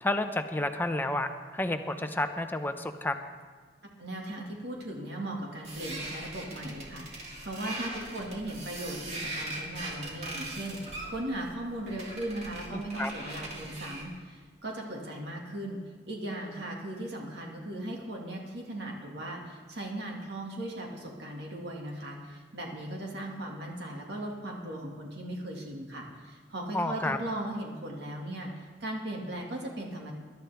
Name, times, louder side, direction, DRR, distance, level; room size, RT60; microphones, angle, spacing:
voice 1, 0.0-3.1 12.7-13.1 26.7-27.2, left 1 dB, 10° left, 7 dB, 0.7 m, -30 dB
voice 2, 4.0-15.8 16.1-30.1, right 1 dB, 65° right, 0 dB, 2.0 m, -38 dB
sound 1, 5.6-14.1, right 2 dB, 40° right, 2.6 m, -40 dB
21.0 x 11.5 x 3.5 m, 1.4 s
head